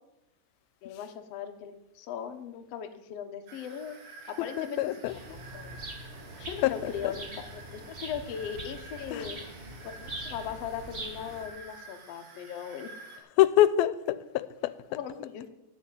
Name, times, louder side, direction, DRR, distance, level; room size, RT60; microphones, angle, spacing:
voice 1, 0.8-4.0 4.3-4.8 5.3-5.8 6.4-9.4 9.8-12.9 14.9-15.5, left 8 dB, 65° left, 7 dB, 1.6 m, -39 dB
sound 1, 3.5-13.2, right 3 dB, 80° right, 4.6 m, -49 dB
voice 2, 4.4-5.1 6.6-7.1 9.1-9.3 13.4-14.7, left 13 dB, 90° left, 15 dB, 2.4 m, -25 dB
sound 2, 5.0-11.5, right 2 dB, 60° right, 0.6 m, -43 dB
13.0 x 7.2 x 9.0 m, 0.95 s
omnidirectional pair, 4.2 m